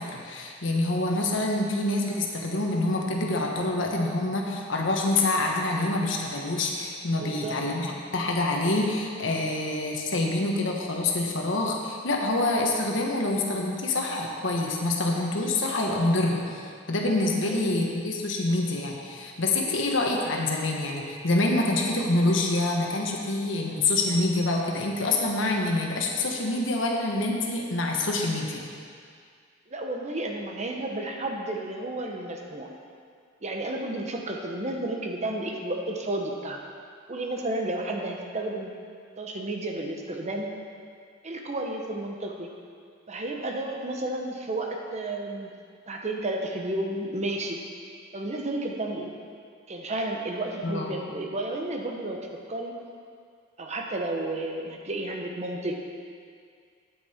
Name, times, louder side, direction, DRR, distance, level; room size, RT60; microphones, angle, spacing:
voice 1, 0.0-16.6 16.9-28.6 50.6-50.9, left 2 dB, 70° left, 0 dB, 1.2 m, -26 dB
voice 2, 7.2-7.6 17.4-17.8 29.7-32.7 33.4-36.6 37.1-38.7 39.2-40.5 41.2-42.5 43.1-45.5 45.9-47.6 48.1-49.1 49.7-52.2 52.5-52.7 53.6-55.9, right 2 dB, 35° right, 1 dB, 1.0 m, -32 dB
8.7 x 8.5 x 4.3 m, 2.2 s
head